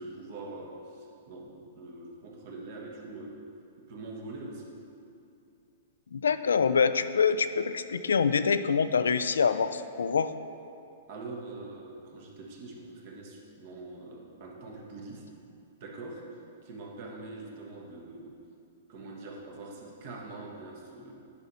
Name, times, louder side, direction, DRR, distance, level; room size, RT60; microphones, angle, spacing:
voice 1, 0.0-3.4 3.9-4.8 11.1-15.3 15.8-18.4 18.9-21.1, right 2 dB, 55° right, -1 dB, 1.5 m, -43 dB
voice 2, 6.1-10.3, left 6 dB, 85° left, 12 dB, 0.3 m, -25 dB
10.5 x 4.9 x 4.1 m, 2.6 s
hypercardioid pair, 120°, 0 cm